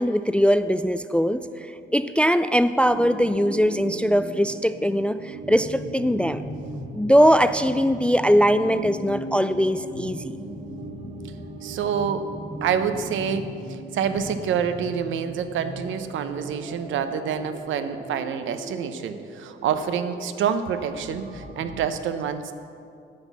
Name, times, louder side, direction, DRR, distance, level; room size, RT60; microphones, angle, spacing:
voice 1, 0.0-6.4 6.9-10.3, equal, 5° left, 12 dB, 0.3 m, -21 dB
sound 1, 2.8-21.9, right 1 dB, 55° right, 2.2 m, -38 dB
voice 2, 11.6-12.3 12.6-22.5, right 7 dB, 80° right, 9 dB, 0.8 m, -27 dB
9.7 x 8.1 x 7.2 m, 2.4 s
cardioid pair, 90°, 20 cm